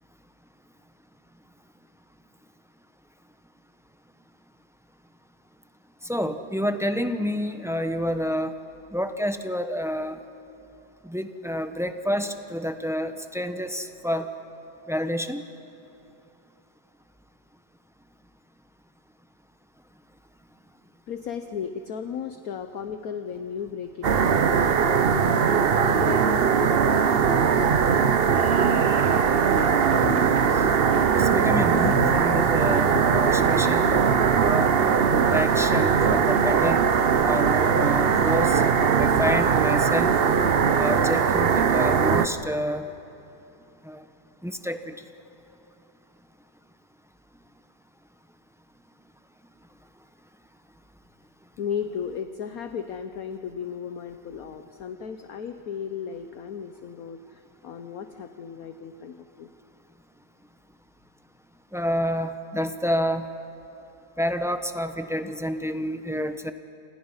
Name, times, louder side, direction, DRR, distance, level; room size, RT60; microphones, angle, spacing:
voice 1, 6.0-8.5 8.9-10.2 11.0-14.3 14.9-15.4 31.2-33.9 34.4-34.7 35.1-36.8 37.2-38.6 39.0-40.1 40.7-42.9 43.9-44.0 44.4-44.9 61.7-63.3 64.2-66.5, equal, 5° right, 8 dB, 0.6 m, -28 dB
voice 2, 21.1-28.0 51.6-59.5, left 7 dB, 60° left, 8 dB, 1.2 m, -35 dB
sound 1, 24.0-42.3, right 6 dB, 50° right, 0.7 m, -20 dB
sound 2, 28.3-38.7, left 5 dB, 35° left, 0.8 m, -37 dB
29.0 x 26.5 x 5.7 m, 2.9 s
omnidirectional pair, 1.9 m